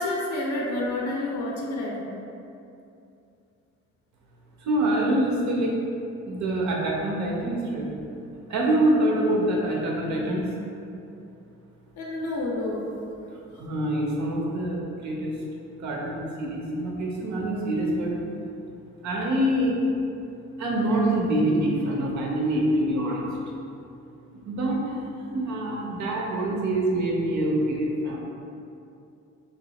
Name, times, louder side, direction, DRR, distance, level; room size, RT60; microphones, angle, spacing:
voice 1, 0.0-2.2 12.0-12.9, left 1 dB, 75° left, -2 dB, 0.9 m, -29 dB
voice 2, 4.6-5.8 6.2-7.9 8.5-10.5 13.5-15.4 15.8-18.1 19.0-19.8 20.6-23.3 24.3-25.0 25.3-28.2, right 1 dB, 70° right, -2 dB, 1.0 m, -25 dB
6.3 x 3.0 x 2.4 m, 2.6 s
cardioid pair, 90°, 30 cm